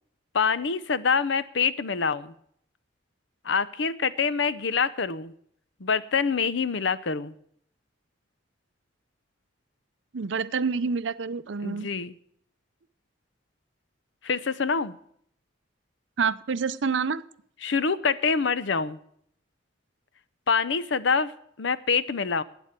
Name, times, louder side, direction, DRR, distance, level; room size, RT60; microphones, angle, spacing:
voice 1, 0.3-2.3 3.4-5.3 5.8-7.3 11.6-12.1 14.2-14.9 17.6-19.0 20.5-21.3 21.6-22.4, left 5 dB, 65° left, 16 dB, 0.7 m, -25 dB
voice 2, 10.1-11.9 16.2-17.2, right 5 dB, 70° right, 16 dB, 0.6 m, -27 dB
12.0 x 9.0 x 8.1 m, 0.68 s
head